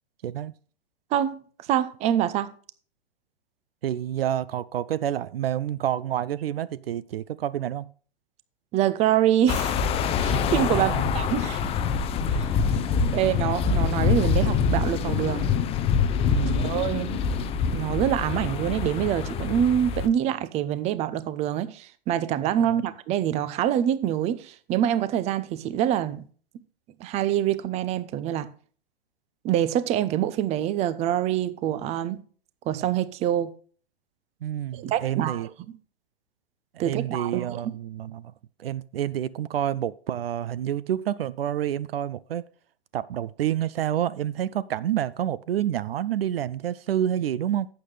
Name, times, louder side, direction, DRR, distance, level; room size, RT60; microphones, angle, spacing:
voice 1, 1.1-1.4 1.7-2.5 8.7-9.8 10.2-11.6 12.4-12.5 13.1-15.5 16.6-17.2 17.7-26.2 27.0-28.5 29.4-32.2 32.7-33.5 34.7-35.4 36.8-37.7, right 11 dB, 20° right, 0.6 m, -25 dB
voice 2, 3.8-7.9 10.7-11.1 13.1-13.2 16.3-16.7 22.7-22.8 34.4-35.5 36.7-38.3 38.6-42.5 42.9-47.7, right 11 dB, 70° right, 0.5 m, -28 dB
sound 1, 9.5-20.1, left 6 dB, 20° left, 0.6 m, -25 dB
11.5 x 8.0 x 3.3 m
hypercardioid pair, 115°, 31 cm